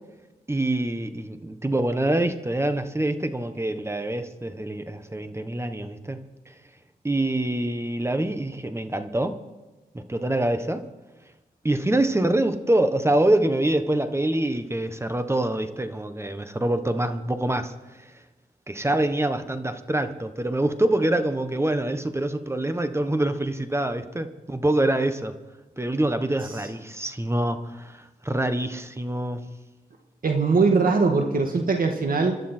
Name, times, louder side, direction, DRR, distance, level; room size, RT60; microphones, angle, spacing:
voice 1, 0.5-6.2 7.0-9.3 9.9-10.8 11.6-17.7 18.7-25.3 25.8-29.4, right 1 dB, 15° right, 9 dB, 1.2 m, -25 dB
voice 2, 30.2-32.4, right 4 dB, 60° right, 3 dB, 1.9 m, -21 dB
27.0 x 12.0 x 4.5 m, 1.1 s
cardioid pair, 80°, 17 cm